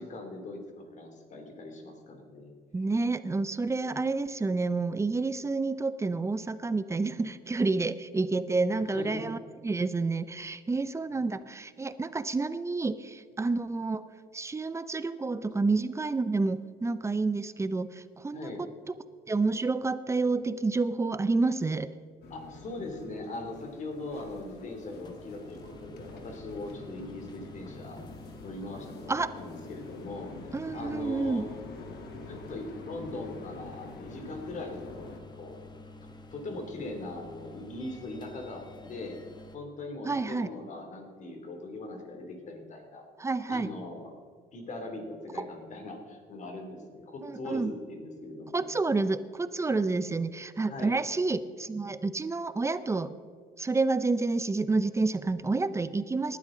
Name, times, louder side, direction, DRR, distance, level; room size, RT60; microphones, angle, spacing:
voice 1, 0.0-2.5 8.9-9.2 18.3-18.6 22.3-28.0 28.4-31.5 32.3-35.6 36.3-39.2 39.5-43.1 43.5-44.1 44.5-48.6 50.7-50.9, left 2 dB, 45° left, 3 dB, 2.9 m, -40 dB
voice 2, 2.7-9.4 9.6-14.0 14.3-18.9 19.3-21.9 29.1-29.3 30.5-31.4 40.0-40.5 43.2-43.7 45.4-45.5 47.2-47.7 48.5-53.1 53.6-56.4, right 3 dB, 15° right, 14 dB, 0.6 m, -29 dB
sound 1, 22.2-35.2, left 3 dB, 75° left, 1.9 m, -47 dB
sound 2, 23.9-39.6, left 2 dB, 25° left, 1.4 m, -49 dB
18.5 x 12.0 x 3.9 m, 2.1 s
cardioid pair, 110°, 17 cm